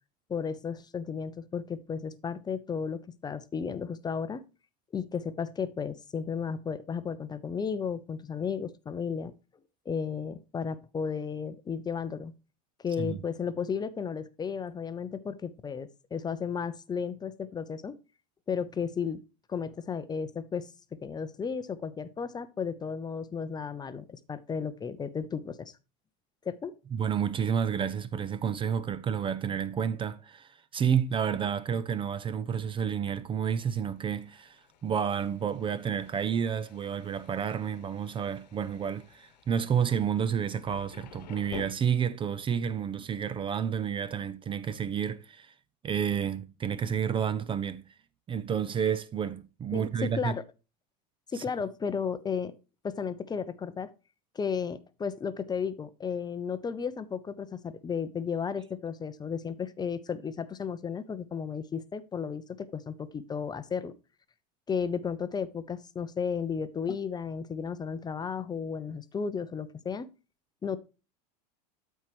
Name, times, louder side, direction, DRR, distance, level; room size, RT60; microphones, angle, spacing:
voice 1, 0.3-4.4 4.9-9.3 9.9-12.3 12.8-18.0 18.5-19.2 19.5-20.7 21.0-25.7 26.4-26.7 49.7-50.4 51.3-52.6 52.8-53.9 54.3-63.9 64.7-70.1 70.6-70.8, left 6 dB, 20° left, 0.6 m, -34 dB
voice 2, 26.9-45.5 45.8-47.9 48.3-50.3 51.3-51.4, right 8 dB, 25° right, 0.5 m, -30 dB
Thunder, 33.5-41.6, left 8 dB, 85° left, 1.1 m, -51 dB
12.5 x 4.5 x 3.1 m
hypercardioid pair, 100°, 21 cm